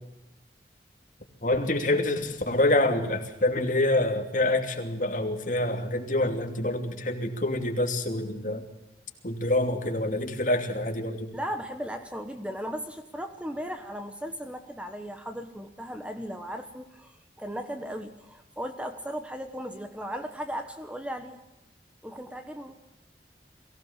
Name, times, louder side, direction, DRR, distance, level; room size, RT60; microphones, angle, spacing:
voice 1, 1.4-8.6 9.2-11.3, left 1 dB, 50° left, 3 dB, 2.9 m, -26 dB
voice 2, 11.3-21.4 22.0-22.8, equal, 5° right, 6 dB, 1.2 m, -36 dB
23.0 x 16.5 x 7.4 m, 0.95 s
head